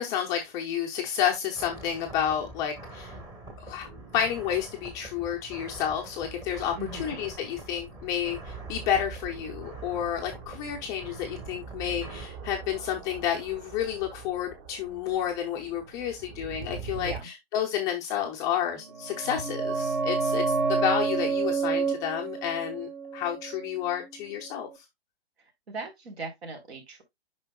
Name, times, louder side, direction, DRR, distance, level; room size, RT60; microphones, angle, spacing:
voice 1, 0.0-3.1 3.6-3.9 4.1-6.7 7.0-20.4 20.7-24.7, left 9 dB, 10° left, 0.4 m, -30 dB
sound 1, 1.6-12.3, right 2 dB, 10° right, 1.1 m, -45 dB
sound 2, 6.1-17.2, right 6 dB, 30° right, 1.2 m, -44 dB
voice 2, 6.8-7.2 17.0-17.3 25.7-27.0, right 3 dB, 70° right, 3.8 m, -39 dB
sound 3, 18.9-24.3 24.5-24.6, right 5 dB, 50° right, 1.7 m, -29 dB
8.7 x 5.5 x 2.2 m
hypercardioid pair, 150°, 32 cm